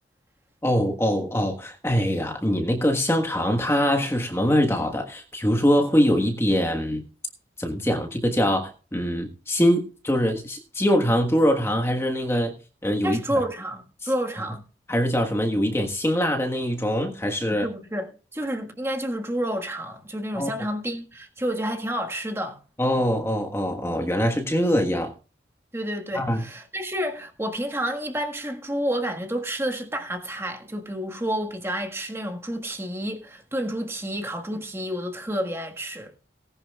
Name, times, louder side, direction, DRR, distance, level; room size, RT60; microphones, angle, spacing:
voice 1, 0.6-7.0 7.6-12.5 12.8-13.2 14.0-14.1 14.9-17.6 20.3-20.5 22.8-25.1 26.1-26.4, equal, 15° left, 1.4 m, -23 dB
voice 2, 13.0-14.6 17.5-22.6 25.7-36.1, equal, 15° right, 1.6 m, -30 dB
18.5 x 11.0 x 2.4 m
head